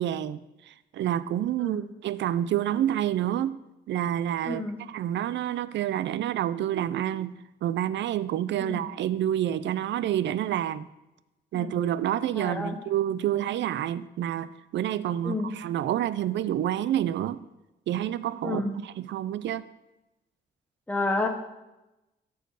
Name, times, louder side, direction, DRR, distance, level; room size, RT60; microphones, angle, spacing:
voice 1, 0.0-3.6 3.9-7.3 7.6-10.9 11.5-17.4 17.9-19.6, right 11 dB, 80° right, 15 dB, 0.5 m, -28 dB
voice 2, 1.6-1.9 4.5-4.8 8.6-8.9 11.5-11.7 12.4-12.8 15.2-15.5 18.4-18.7 20.9-21.3, left 2 dB, 10° left, 3 dB, 1.0 m, -30 dB
13.0 x 4.6 x 4.7 m, 0.98 s
cardioid pair, 90°, 19 cm